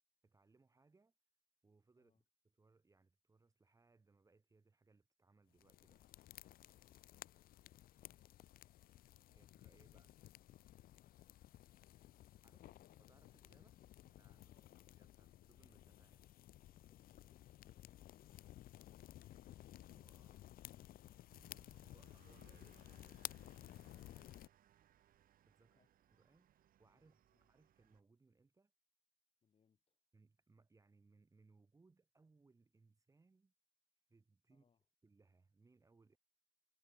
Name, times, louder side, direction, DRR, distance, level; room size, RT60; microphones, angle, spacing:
voice 1, 0.2-1.1 1.6-2.2 2.5-6.2 9.3-10.1 12.4-13.8 14.1-14.5 14.9-16.3 19.8-20.4 21.8-24.5 25.5-25.8 26.1-28.7 30.1-33.5 34.1-34.6 35.0-36.2, right 3 dB, 20° right, 2.4 m, -72 dB
sound 1, 5.6-24.5, left 13 dB, 60° left, 0.6 m, -56 dB
voice 2, 8.1-8.5 9.3-9.8 12.6-13.0 14.5-14.9 16.7-19.2 25.6-26.2 26.9-27.5 29.4-30.0 34.5-34.9, left 6 dB, 35° left, 5.5 m, -80 dB
sound 2, 21.3-28.0, right 11 dB, 55° right, 1.4 m, -71 dB
cardioid pair, 110°, 17 cm